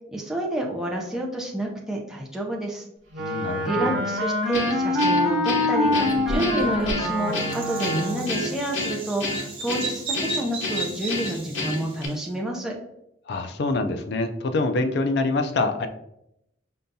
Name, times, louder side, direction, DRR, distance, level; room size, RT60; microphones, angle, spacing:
voice 1, 0.1-2.9 3.3-12.7, right 1 dB, 5° right, -1 dB, 0.4 m, -29 dB
Wind instrument woodwind instrument, 3.1-8.5, left 1 dB, 60° right, 1.1 m, -25 dB
voice 2, 3.2-4.0 13.3-15.9, left 2 dB, 55° left, 6 dB, 0.4 m, -25 dB
Guitar, 4.5-12.1, left 2 dB, 85° left, 0.8 m, -30 dB
Bird vocalization bird call bird song, 5.8-12.1, right 2 dB, 30° right, 0.7 m, -34 dB
5.3 x 2.3 x 2.6 m, 0.80 s
head